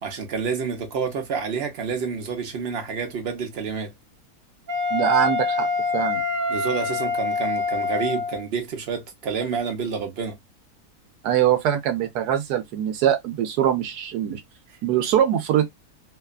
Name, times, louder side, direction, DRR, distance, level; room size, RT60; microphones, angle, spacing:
voice 1, 0.0-3.9 6.5-10.3, right 6 dB, 50° right, 0.9 m, -29 dB
Wind instrument woodwind instrument, 4.7-8.4, left 4 dB, 65° right, 1.3 m, -25 dB
voice 2, 4.9-5.7 5.9-6.2 11.2-14.4 14.8-15.7, right 10 dB, 90° right, 1.2 m, -22 dB
2.9 x 2.3 x 2.3 m
omnidirectional pair, 1.6 m